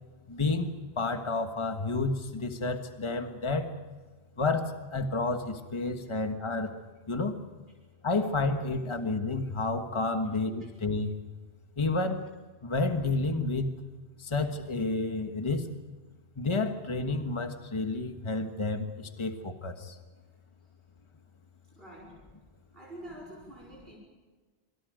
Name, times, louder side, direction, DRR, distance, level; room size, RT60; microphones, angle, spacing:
voice 1, 0.3-0.7 1.0-3.7 4.4-6.8 7.1-7.4 8.0-11.1 11.8-12.3 12.6-13.7 14.2-15.7 16.4-20.0, left 3 dB, 30° left, 6 dB, 1.5 m, -30 dB
voice 2, 21.7-22.2 22.7-24.0, right 1 dB, 65° right, -3 dB, 5.3 m, -47 dB
26.5 x 26.0 x 5.2 m, 1.3 s
omnidirectional pair, 1.0 m